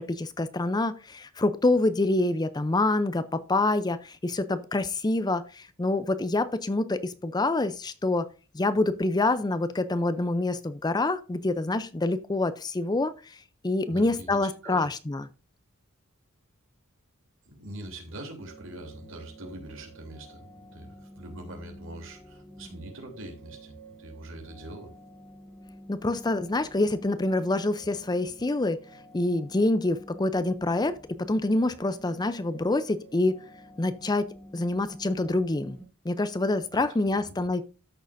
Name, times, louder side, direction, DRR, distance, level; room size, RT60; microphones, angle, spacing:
voice 1, 0.0-8.3 8.5-13.4 13.6-15.3 25.9-28.8 29.1-33.4 33.8-34.3 34.5-35.8 36.0-37.6, left 2 dB, 20° left, 13 dB, 0.5 m, -26 dB
voice 2, 13.9-14.9 17.4-24.9 36.7-36.8 37.2-37.3, right 1 dB, 65° right, 3 dB, 3.1 m, -43 dB
sound 1, 18.4-35.8, right 1 dB, ahead, 3.6 m, -49 dB
13.5 x 6.5 x 2.6 m, 0.35 s
head